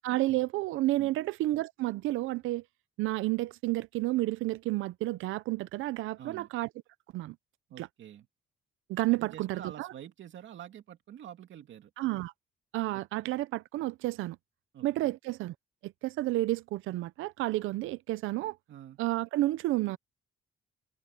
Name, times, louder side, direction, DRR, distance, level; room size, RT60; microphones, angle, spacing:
voice 1, 0.0-2.6 3.0-6.7 7.1-7.4 7.8-7.9 8.9-9.9 12.0-12.3 12.7-14.4 14.8-15.5 15.8-18.6 19.0-20.0, right 17 dB, 90° right, 0.6 m, -31 dB
voice 2, 6.2-6.5 7.7-8.3 9.1-11.9 12.9-13.3 14.7-15.2 18.7-19.0, right 10 dB, 70° right, 2.5 m, -47 dB
cardioid pair, 90°, 20 cm